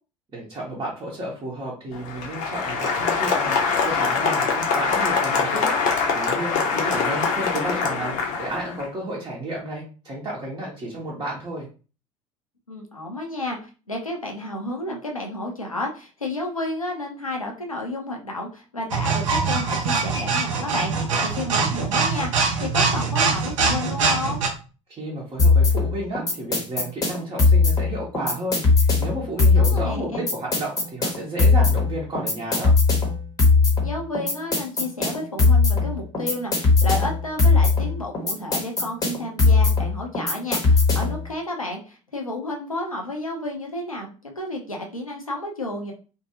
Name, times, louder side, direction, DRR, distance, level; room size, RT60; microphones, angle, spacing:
voice 1, 0.3-5.7 6.1-11.7 24.9-32.7, right 1 dB, 25° right, -5 dB, 0.9 m, -32 dB
Applause, 1.9-8.8, left 5 dB, 45° left, 0.6 m, -24 dB
voice 2, 6.6-7.0 12.7-24.4 29.6-30.3 33.8-45.9, left 2 dB, 90° left, 1 dB, 0.6 m, -31 dB
sound 1, 18.9-24.5, right 4 dB, 70° right, 0.6 m, -23 dB
sound 2, 25.4-41.3, left 4 dB, 20° left, 0.9 m, -19 dB
2.6 x 2.2 x 2.8 m, 0.35 s
figure-of-eight pair, 70°, 17 cm